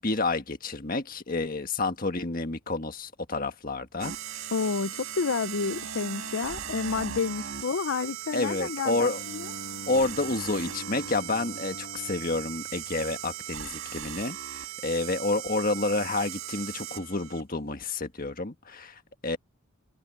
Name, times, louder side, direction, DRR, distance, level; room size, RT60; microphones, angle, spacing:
voice 1, 0.0-4.1 8.3-9.2 9.9-19.4, left 2 dB, 40° left, 1.6 m, -29 dB
sound 1, 4.0-17.4, right 10 dB, 65° right, 2.1 m, -38 dB
voice 2, 4.5-9.5, left 5 dB, 65° left, 0.5 m, -30 dB
Bowed string instrument, 8.9-13.7, left 1 dB, 80° left, 2.2 m, -45 dB
head